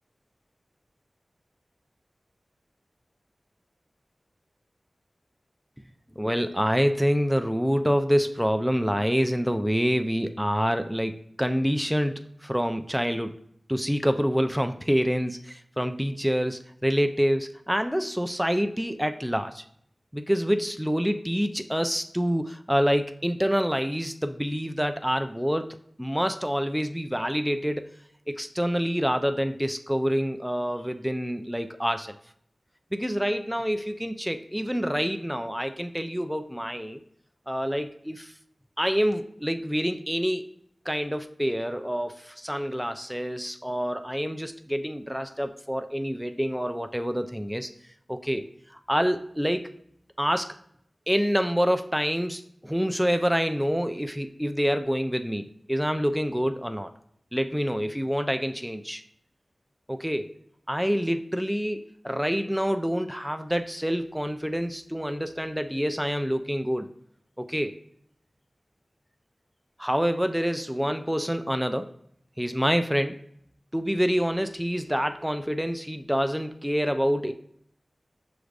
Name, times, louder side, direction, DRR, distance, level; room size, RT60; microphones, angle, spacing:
voice 1, 6.2-13.3 13.7-19.6 20.1-27.9 28.3-32.2 32.9-37.0 37.5-38.3 38.8-40.5 40.9-47.7 48.1-48.4 48.7-49.7 50.2-50.5 51.1-56.9 57.3-59.0 59.9-60.3 60.7-66.9 67.4-67.7 69.8-71.9 72.4-73.2 73.7-77.3, equal, 5° right, 8 dB, 0.3 m, -27 dB
6.1 x 3.3 x 2.4 m, 0.66 s
wide cardioid pair, 75°, 0 cm